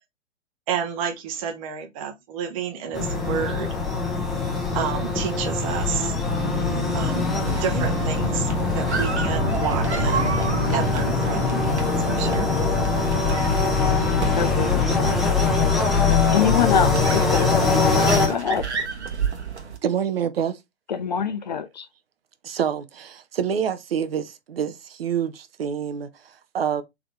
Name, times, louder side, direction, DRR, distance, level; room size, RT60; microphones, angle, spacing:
voice 1, 0.7-3.7 4.7-6.1 6.9-7.3 7.6-10.3 10.7-11.5 12.1-12.5, right 7 dB, 30° right, 0.8 m, -30 dB
sound 1, 2.9-18.3, left 3 dB, ahead, 0.8 m, -23 dB
Livestock farm animals working animals, 5.7-17.2, left 13 dB, 20° left, 1.4 m, -31 dB
sound 2, 7.4-19.8, right 6 dB, 75° right, 1.1 m, -31 dB
voice 2, 13.5-15.2 16.3-18.7 20.9-21.9, left 7 dB, 40° left, 0.4 m, -26 dB
voice 3, 19.8-20.6 22.4-26.8, right 8 dB, 55° right, 0.6 m, -27 dB
3.9 x 2.9 x 3.0 m
figure-of-eight pair, 115°, 34 cm